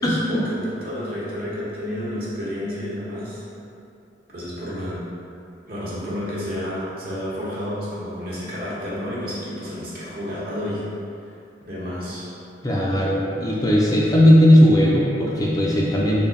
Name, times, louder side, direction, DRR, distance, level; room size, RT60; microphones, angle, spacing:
voice 1, 0.0-3.4 4.3-5.0 5.7-10.9 11.6-12.3, left 1 dB, 55° right, -8 dB, 0.9 m, -30 dB
voice 2, 12.6-16.3, equal, 20° left, -4 dB, 0.3 m, -17 dB
3.6 x 2.1 x 3.8 m, 2.6 s
head